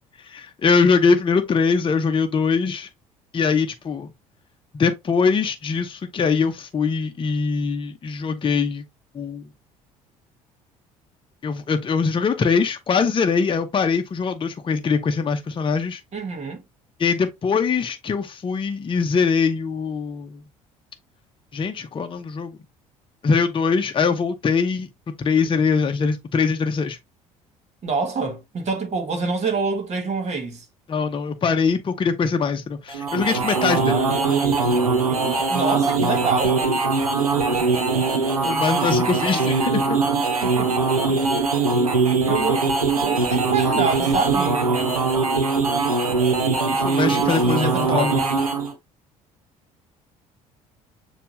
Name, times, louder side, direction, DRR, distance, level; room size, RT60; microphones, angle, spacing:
voice 1, 0.3-2.9 3.3-4.1 4.7-8.8 9.1-9.4 11.4-16.0 17.0-20.4 21.5-22.6 23.2-24.9 25.2-27.0 30.9-33.9 38.4-40.0 46.7-48.1, left 5 dB, 30° left, 0.8 m, -22 dB
voice 2, 16.1-16.6 27.8-30.7 33.7-36.7 40.4-40.8 41.1-41.2 41.9-45.1 47.0-48.4, right 4 dB, 40° right, 1.7 m, -27 dB
sound 1, 32.9-48.7, right 4 dB, 90° right, 0.8 m, -21 dB
6.8 x 2.4 x 3.1 m
figure-of-eight pair, 55°, 18 cm